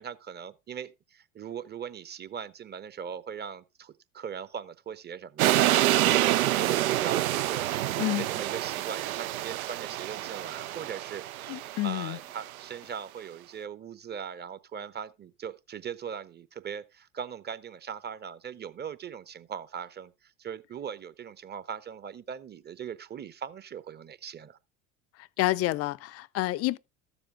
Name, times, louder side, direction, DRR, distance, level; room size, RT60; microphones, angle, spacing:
voice 1, 0.0-24.6, right 7 dB, 25° right, 0.8 m, -40 dB
sound 1, 5.4-12.5, right 14 dB, 80° right, 0.5 m, -27 dB
voice 2, 11.5-12.2 25.4-26.8, left 17 dB, 35° left, 0.5 m, -28 dB
13.5 x 7.1 x 3.7 m
figure-of-eight pair, 70°, 42 cm